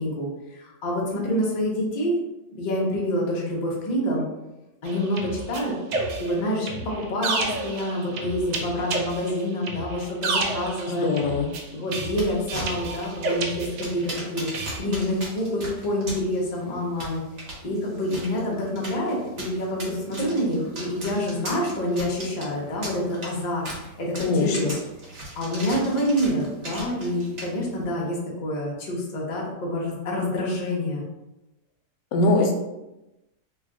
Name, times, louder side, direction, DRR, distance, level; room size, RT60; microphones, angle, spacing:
voice 1, 0.0-2.2 2.5-4.2 4.8-5.7 6.2-11.1 11.7-14.5 14.8-17.2 17.6-24.7 25.4-31.0, equal, 45° left, -3 dB, 0.5 m, -27 dB
sound 1, 4.9-14.2 14.5-14.8, right 3 dB, 85° right, 1.3 m, -31 dB
voice 2, 10.9-11.5 24.2-24.7 32.1-32.5, left 3 dB, 85° left, 2 dB, 1.3 m, -22 dB
sound 2, 12.1-27.8, right 2 dB, 50° right, 1.1 m, -39 dB
3.1 x 2.3 x 3.6 m, 0.98 s
omnidirectional pair, 1.8 m